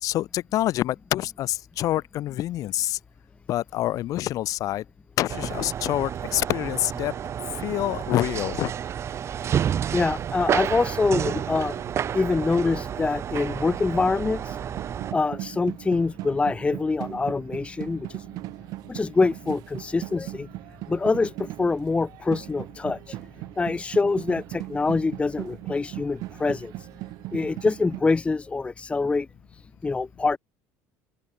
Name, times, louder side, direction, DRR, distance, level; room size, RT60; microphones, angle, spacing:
voice 1, 0.0-3.0 3.5-4.8 5.2-7.1 7.6-8.7, left 14 dB, 60° left, 4.4 m, -26 dB
sound 1, 5.3-15.1, right 9 dB, 45° right, 5.8 m, -30 dB
voice 2, 9.9-11.7 12.1-14.6 15.1-18.2 18.9-20.5 20.9-23.2 23.6-26.7 27.3-29.3 29.8-30.4, left 3 dB, 20° left, 1.0 m, -25 dB
sound 2, 13.7-28.0, right 18 dB, 70° right, 3.8 m, -38 dB
open air
supercardioid pair, 100°, 7 cm